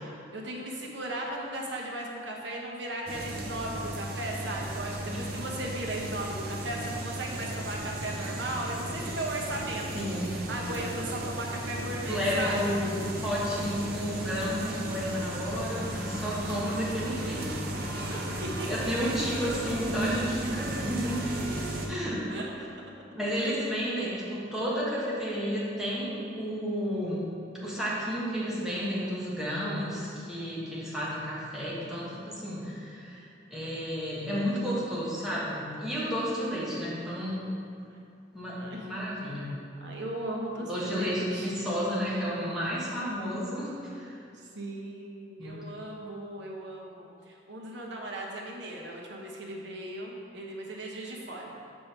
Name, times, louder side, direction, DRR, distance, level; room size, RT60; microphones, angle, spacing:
voice 1, 0.3-12.6 13.2-13.3 17.8-19.1 22.3-22.5 22.8-22.9 23.3-23.5 30.2-30.6 37.9-38.0 38.6-38.9 39.8-41.7 44.3-51.5, right 1 dB, 70° right, -1 dB, 1.1 m, -37 dB
sound 1, 3.1-21.9, right 1 dB, 50° right, 0.8 m, -35 dB
voice 2, 9.9-10.4 12.0-17.7 18.1-18.3 18.7-21.3 21.9-22.3 23.1-27.2 27.5-33.2 33.5-37.4 38.3-39.5 40.7-44.1 45.4-45.6, equal, 5° right, -8 dB, 1.5 m, -32 dB
6.3 x 5.6 x 4.5 m, 2.5 s
head